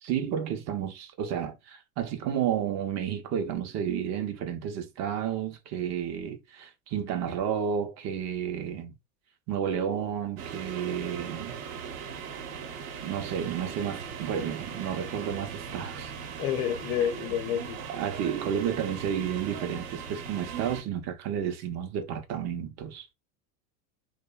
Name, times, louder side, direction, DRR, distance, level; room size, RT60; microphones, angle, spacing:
voice 1, 0.0-8.9 9.5-11.6 13.0-16.1 17.0-17.1 17.9-23.1, right 8 dB, 40° right, 0.5 m, -31 dB
sound 1, 10.4-20.8, right 6 dB, 70° right, 0.8 m, -39 dB
voice 2, 16.4-17.8, left 9 dB, 75° left, 0.7 m, -29 dB
2.6 x 2.1 x 2.2 m
hypercardioid pair, 105°, 46 cm